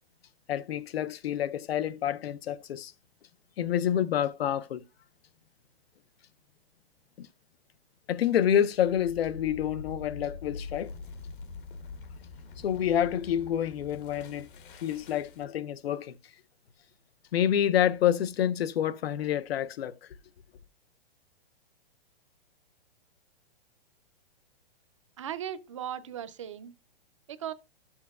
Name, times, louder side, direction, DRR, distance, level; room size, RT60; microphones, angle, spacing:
voice 1, 0.5-2.9 3.6-4.8 7.2-7.3 8.1-10.9 12.6-14.5 14.8-16.1 17.3-19.9, left 10 dB, 85° left, 0.6 m, -28 dB
sound 1, 8.7-15.6, left 4 dB, 60° left, 0.9 m, -44 dB
voice 2, 25.2-26.7 27.3-27.5, right 10 dB, 35° right, 0.4 m, -37 dB
12.0 x 7.2 x 2.3 m
hypercardioid pair, 165°, 30 cm